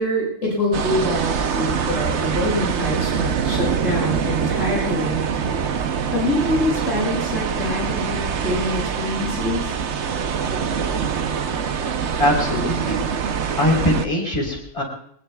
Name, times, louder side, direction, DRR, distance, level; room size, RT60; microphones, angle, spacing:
voice 1, 0.0-5.2 6.1-9.7, left 1 dB, 65° left, -4 dB, 7.5 m, -25 dB
sound 1, 0.7-14.1, right 6 dB, 60° right, 1.1 m, -24 dB
voice 2, 12.2-13.0 13.6-14.8, left 1 dB, 25° left, 0 dB, 4.0 m, -21 dB
23.5 x 20.0 x 2.4 m, 0.65 s
omnidirectional pair, 1.4 m